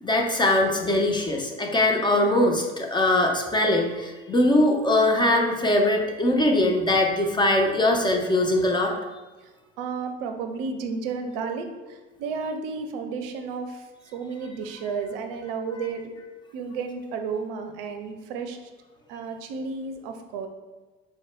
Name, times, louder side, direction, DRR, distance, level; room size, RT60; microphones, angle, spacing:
voice 1, 0.0-8.9, left 1 dB, 15° left, 1 dB, 0.7 m, -21 dB
voice 2, 9.8-16.1 16.5-18.6 19.1-20.5, right 5 dB, 65° right, 6 dB, 0.6 m, -32 dB
4.5 x 2.2 x 4.4 m, 1.2 s
hypercardioid pair, 65°, 30 cm